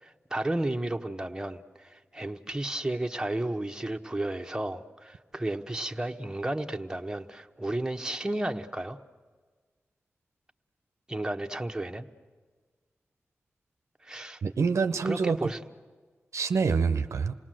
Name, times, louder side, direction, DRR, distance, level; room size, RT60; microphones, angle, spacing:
voice 1, 0.0-9.0 11.1-12.1 14.0-14.4 15.0-15.6, right 1 dB, 15° right, 5 dB, 1.1 m, -33 dB
voice 2, 14.4-15.5 16.3-17.3, right 5 dB, 80° right, 9 dB, 0.6 m, -26 dB
28.0 x 18.5 x 7.7 m, 1.5 s
cardioid pair, 45°, 5 cm